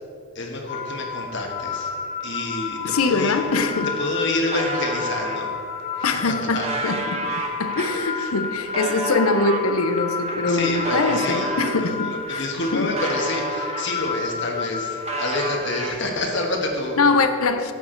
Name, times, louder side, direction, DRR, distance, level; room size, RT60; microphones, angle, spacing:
voice 1, 0.3-1.9 2.2-3.4 4.0-5.5 5.9-6.7 10.5-17.0, left 2 dB, 55° left, 1.4 m, -28 dB
sound 1, 0.7-15.8, left 5 dB, 35° left, 0.8 m, -31 dB
voice 2, 2.8-3.9 6.0-7.3 7.6-12.4 12.7-12.9 17.0-17.7, left 3 dB, 80° left, 0.7 m, -23 dB
sound 2, 3.5-3.6 3.8-5.4 6.0-11.8 12.3-14.2 14.5-16.3, right 3 dB, 30° right, 1.0 m, -32 dB
11.5 x 8.2 x 3.9 m
head